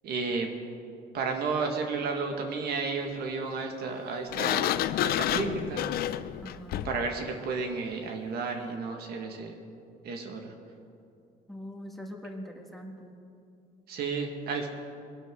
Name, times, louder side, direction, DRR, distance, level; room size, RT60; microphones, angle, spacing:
voice 1, 0.0-0.5 1.1-4.8 5.0-5.8 6.8-9.6 10.0-10.5 13.9-14.7, right 4 dB, 70° right, 3 dB, 1.7 m, -32 dB
Sliding door, 4.3-7.1, left 12 dB, 65° left, 0.5 m, -29 dB
voice 2, 6.4-6.9 11.5-13.2, equal, ahead, 2 dB, 1.6 m, -42 dB
21.5 x 12.0 x 3.7 m, 2.5 s
cardioid pair, 110°, 17 cm